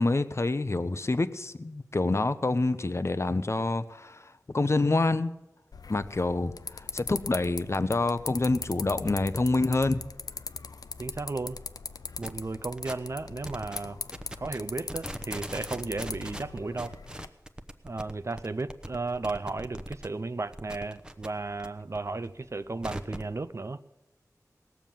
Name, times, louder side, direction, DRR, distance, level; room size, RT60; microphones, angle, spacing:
voice 1, 0.0-4.2 4.5-5.3 5.9-10.0, left 2 dB, 45° left, 0.7 m, -27 dB
sound 1, 5.7-17.3, left 4 dB, 90° left, 0.4 m, -41 dB
voice 2, 11.0-11.6 12.2-14.0 14.4-16.9 17.8-23.8, right 3 dB, 50° right, 0.4 m, -34 dB
sound 2, 12.2-12.4 12.8-13.1 13.4-13.8 14.1-14.6 14.8-20.1 20.4-21.7 21.9-23.3, right 1 dB, 15° right, 0.9 m, -41 dB
18.0 x 7.1 x 7.5 m
wide cardioid pair, 60°, 6 cm